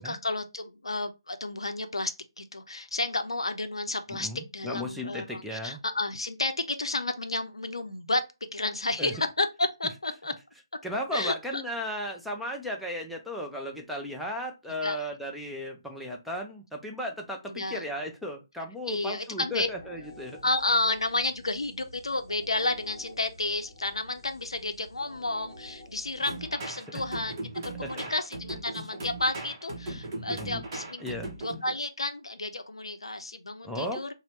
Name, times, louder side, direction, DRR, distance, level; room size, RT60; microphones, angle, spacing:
voice 1, 0.0-8.2 8.5-10.3 11.1-11.6 14.8-15.0 17.5-17.8 18.9-19.7 20.4-31.0 31.4-34.1, left 2 dB, 75° left, 0.5 m, -31 dB
voice 2, 4.1-5.8 9.0-9.1 10.8-20.4 26.9-27.0 27.8-27.9 28.7-28.9 30.3-30.6 31.0-31.3 33.6-34.0, equal, ahead, 0.3 m, -35 dB
sound 1, 19.6-27.2, left 1 dB, 35° left, 0.8 m, -50 dB
sound 2, 26.3-31.7, right 2 dB, 35° right, 0.8 m, -38 dB
2.7 x 2.0 x 3.1 m
figure-of-eight pair, 145°, 3 cm